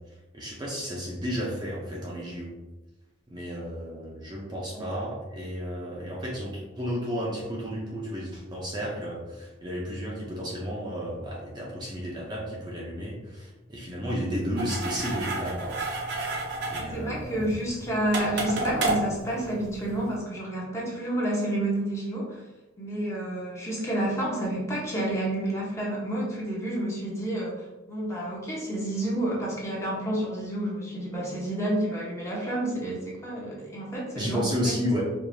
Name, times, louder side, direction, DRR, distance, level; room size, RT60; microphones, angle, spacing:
voice 1, 0.3-2.6 3.3-15.8 16.7-17.5 34.1-35.0, equal, 20° right, -4 dB, 0.6 m, -32 dB
sound 1, 14.6-20.1, right 2 dB, 60° right, 0.7 m, -31 dB
voice 2, 16.8-22.4 22.8-34.9, right 1 dB, 15° left, -5 dB, 0.9 m, -30 dB
4.7 x 2.5 x 2.7 m, 1.1 s
head